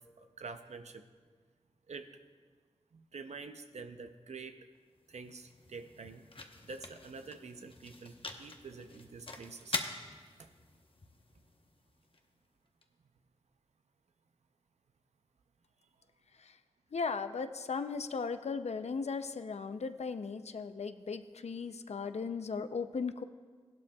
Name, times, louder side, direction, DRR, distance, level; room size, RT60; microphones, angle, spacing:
voice 1, 0.2-1.0 1.9-2.1 2.9-4.6 5.1-6.2 6.6-9.8 10.4-10.5, right 4 dB, 90° right, 7 dB, 0.6 m, -47 dB
sound 1, 4.7-12.8, left 2 dB, 55° left, 1.0 m, -45 dB
voice 2, 16.9-23.2, left 5 dB, 75° left, 10 dB, 0.5 m, -37 dB
16.5 x 12.0 x 2.3 m, 1.5 s
cardioid pair, 45°, 11 cm